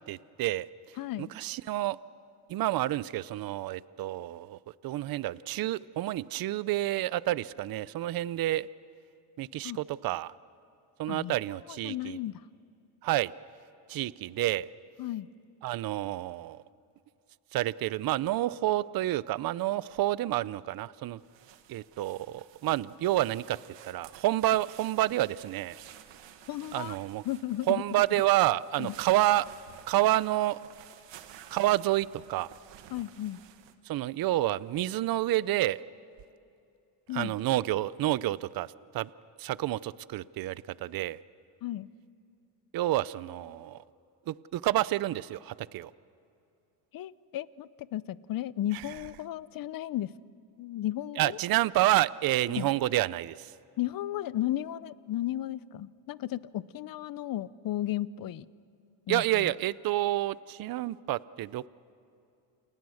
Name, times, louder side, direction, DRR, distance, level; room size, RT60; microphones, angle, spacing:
voice 1, 0.1-0.7 1.2-2.0 2.5-8.7 9.4-10.3 11.0-12.2 13.0-13.3 13.9-14.7 15.6-16.6 17.5-21.2 21.7-23.6 23.8-25.8 26.7-27.2 27.7-29.5 29.9-30.6 31.5-32.5 33.9-35.8 37.1-39.1 39.4-41.2 42.7-43.8 44.3-45.9 51.2-53.5 59.1-61.7, right 15 dB, 50° right, 19 dB, 0.6 m, -29 dB
voice 2, 1.0-1.3 9.6-9.8 11.1-11.4 11.7-12.4 15.0-15.3 26.5-26.9 27.2-27.8 28.8-28.9 32.9-33.4 37.1-37.3 41.6-41.9 46.9-50.1 50.6-51.4 52.5-52.7 53.8-58.5 59.1-59.5, left 13 dB, 50° left, 18 dB, 0.7 m, -34 dB
sound 1, 21.2-33.7, right 11 dB, 70° right, 1.8 m, -53 dB
29.5 x 29.0 x 6.4 m, 2.5 s
cardioid pair, 115°, 45 cm